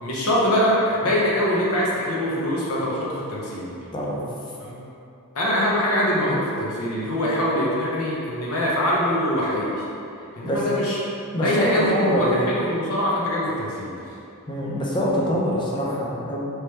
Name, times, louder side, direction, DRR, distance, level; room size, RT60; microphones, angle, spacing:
voice 1, 0.0-3.7 4.6-4.8 5.3-9.7 10.4-11.0 11.3-13.9, equal, 65° left, -6 dB, 0.8 m, -23 dB
voice 2, 10.2-10.6 11.3-12.5 14.5-16.5, equal, 20° left, -5 dB, 0.6 m, -24 dB
3.1 x 3.1 x 3.2 m, 2.7 s
head